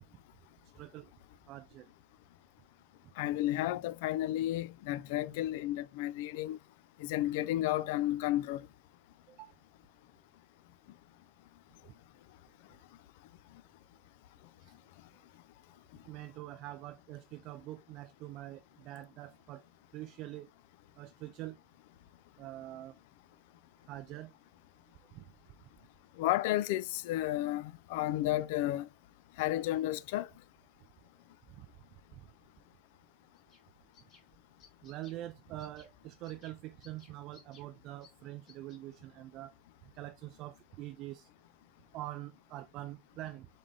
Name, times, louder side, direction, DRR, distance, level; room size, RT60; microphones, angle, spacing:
voice 1, 0.8-1.1 1.5-1.9 9.3-9.5 14.6-14.7 16.1-19.6 19.9-20.5 21.0-21.6 22.4-22.9 23.9-24.3 25.1-25.3 31.5-31.7 34.8-39.5 39.8-41.3 41.9-43.5, right 15 dB, 40° right, 0.3 m, -45 dB
voice 2, 3.2-6.6 7.0-8.7 26.2-28.9 29.4-30.3, left 14 dB, 65° left, 0.3 m, -32 dB
sound 1, 33.4-33.6 33.9-34.2 34.6-35.2 35.6-35.9 36.2-36.6 36.8-37.7 38.0-38.1 38.5-38.8, left 5 dB, 30° left, 1.7 m, -60 dB
3.9 x 3.6 x 3.2 m
supercardioid pair, 175°, 0 cm